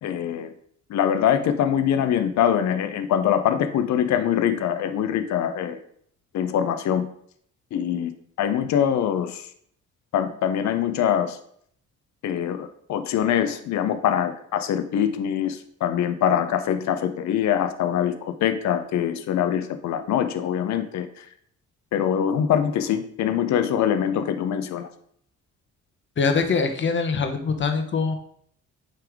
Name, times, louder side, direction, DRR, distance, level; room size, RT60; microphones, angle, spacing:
voice 1, 0.0-0.5 0.9-5.8 6.3-7.1 7.7-8.1 8.4-9.5 10.1-11.4 12.2-21.3 21.9-24.9, left 9 dB, 65° left, 10 dB, 0.6 m, -23 dB
voice 2, 26.2-28.2, left 5 dB, 40° left, 6 dB, 1.0 m, -23 dB
9.1 x 3.4 x 3.5 m, 0.64 s
cardioid pair, 90°, 30 cm